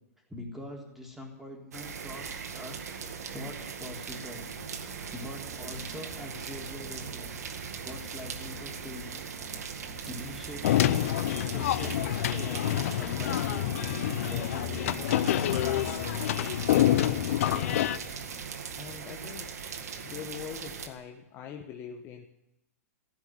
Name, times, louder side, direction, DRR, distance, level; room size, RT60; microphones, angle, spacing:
voice 1, 0.3-4.4 4.7-7.3 7.6-9.2 9.5-13.9 14.2-15.9, left 1 dB, 5° right, 0 dB, 3.7 m, -44 dB
sound 1, 1.7-20.9, right 6 dB, 85° right, 1.9 m, -40 dB
sound 2, 4.3-20.5, right 4 dB, 45° right, 3.5 m, -47 dB
sound 3, 10.6-18.0, left 12 dB, 60° left, 0.8 m, -27 dB
voice 2, 17.4-18.1 18.8-19.5 20.0-22.3, left 8 dB, 30° left, 4 dB, 1.3 m, -43 dB
15.5 x 8.4 x 9.7 m, 0.88 s
hypercardioid pair, 135°, 8 cm